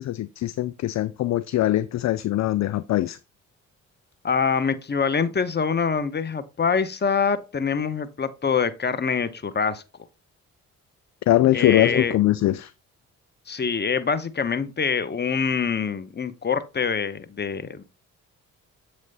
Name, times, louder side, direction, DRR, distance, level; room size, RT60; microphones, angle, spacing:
voice 1, 0.0-3.2 11.3-12.7, left 14 dB, 45° left, 0.4 m, -22 dB
voice 2, 4.2-9.8 11.5-12.2 13.5-17.8, left 6 dB, 25° left, 0.8 m, -25 dB
7.4 x 3.2 x 4.0 m
hypercardioid pair, 40°, 38 cm